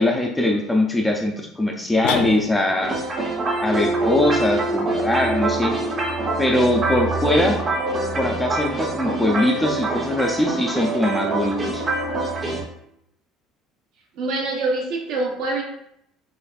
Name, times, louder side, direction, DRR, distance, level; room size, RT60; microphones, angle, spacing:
voice 1, 0.0-3.0 3.6-5.7 6.4-7.6 8.2-11.8, left 1 dB, 5° left, 1 dB, 0.4 m, -21 dB
sound 1, 2.0-2.9, left 9 dB, 85° left, 0.4 m, -27 dB
sound 2, 2.8-12.6, right 2 dB, 25° right, 0.8 m, -25 dB
voice 2, 7.2-8.2 14.2-15.6, right 2 dB, 60° right, 0 dB, 1.0 m, -26 dB
6.6 x 2.5 x 2.4 m, 0.76 s
cardioid pair, 165°, 0 cm